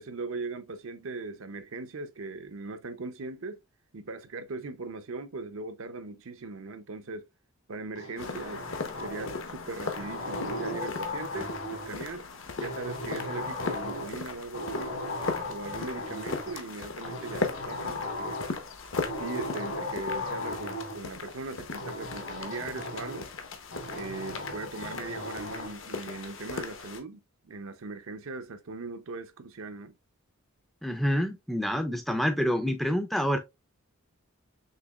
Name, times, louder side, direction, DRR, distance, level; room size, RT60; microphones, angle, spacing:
voice 1, 0.0-3.6 3.9-7.2 7.7-12.2 12.6-15.0 15.5-18.4 19.2-23.3 23.9-29.9 31.9-32.0, right 3 dB, 65° right, 0.7 m, -39 dB
sound 1, 8.0-9.5 9.9-11.9 12.6-14.2 14.5-16.5 17.0-18.6 19.0-21.0 21.8-23.3 23.7-25.7, left 2 dB, 75° left, 2.4 m, -37 dB
sound 2, 8.2-27.0, left 4 dB, 60° left, 0.8 m, -38 dB
voice 2, 30.8-33.4, equal, ahead, 0.4 m, -27 dB
6.6 x 2.9 x 2.3 m
head